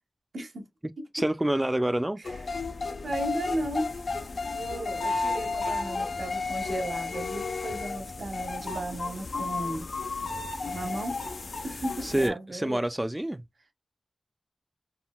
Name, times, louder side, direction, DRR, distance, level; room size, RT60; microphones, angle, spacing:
voice 1, 1.1-2.2 12.0-13.4, right 1 dB, 15° right, 0.3 m, -27 dB
sound 1, 2.2-12.3, left 3 dB, 80° left, 0.5 m, -33 dB
voice 2, 3.0-3.9 4.5-9.9 10.6-11.2 11.6-12.8, right 1 dB, 90° right, 1.2 m, -35 dB
3.7 x 2.1 x 2.2 m
wide cardioid pair, 75°, 0 cm